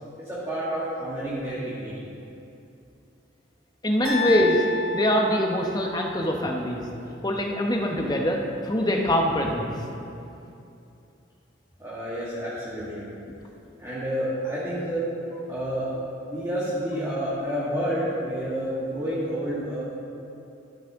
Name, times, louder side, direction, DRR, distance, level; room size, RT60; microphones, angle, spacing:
voice 1, 0.2-2.1 11.8-13.1 13.8-15.1 15.5-15.9 16.2-19.8, equal, 15° right, -10 dB, 1.7 m, -29 dB
voice 2, 3.8-4.6 4.9-6.8 7.2-9.8, left 1 dB, 20° left, 1 dB, 0.9 m, -24 dB
sound 1, 4.0-6.2, left 3 dB, 85° right, 1.8 m, -30 dB
12.5 x 9.0 x 3.6 m, 2.7 s
head